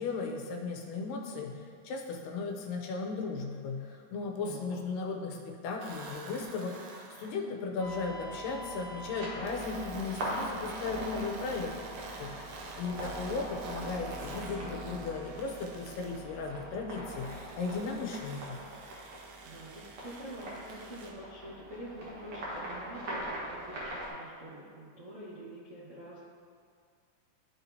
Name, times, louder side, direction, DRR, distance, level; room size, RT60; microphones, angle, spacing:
voice 1, 0.0-11.7 12.2-18.6, left 4 dB, 85° left, 1 dB, 2.4 m, -36 dB
voice 2, 4.4-4.8 12.9-13.4 19.4-26.2, right 1 dB, 70° right, -10 dB, 0.7 m, -46 dB
sound 1, 5.8-7.4 9.5-16.2 17.1-21.1, right 3 dB, 85° right, 1.4 m, -48 dB
sound 2, 7.8-24.1, right 1 dB, 50° right, 1.9 m, -42 dB
13.0 x 4.4 x 2.8 m, 2.1 s
omnidirectional pair, 3.8 m